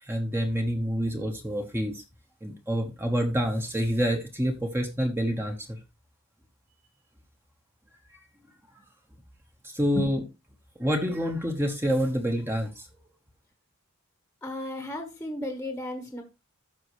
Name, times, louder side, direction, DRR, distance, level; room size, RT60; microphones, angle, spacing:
voice 1, 0.0-2.0 2.4-5.8 9.6-10.2 10.8-12.9, equal, 10° right, 3 dB, 1.0 m, -27 dB
voice 2, 14.4-16.2, left 1 dB, 10° left, 5 dB, 1.2 m, -34 dB
13.0 x 5.3 x 3.1 m, 0.26 s
head